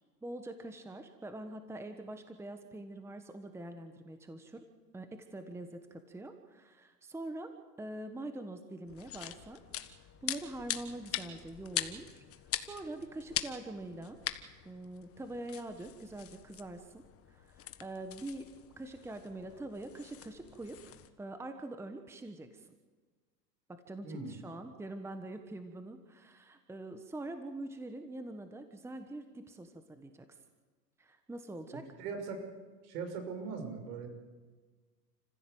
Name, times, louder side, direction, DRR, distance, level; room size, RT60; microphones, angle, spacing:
voice 1, 0.2-4.6 4.9-7.5 7.8-9.6 10.2-12.2 12.6-14.2 14.6-18.5 18.8-22.7 23.7-30.2 31.0-31.9, right 2 dB, 5° right, 7 dB, 1.3 m, -44 dB
sound 1, 8.9-21.1, left 11 dB, 25° left, 1.4 m, -42 dB
voice 2, 24.0-24.4 32.0-32.4 32.8-34.1, right 5 dB, 65° right, 6 dB, 6.2 m, -40 dB
29.5 x 15.5 x 8.0 m, 1.4 s
hypercardioid pair, 125°, 50 cm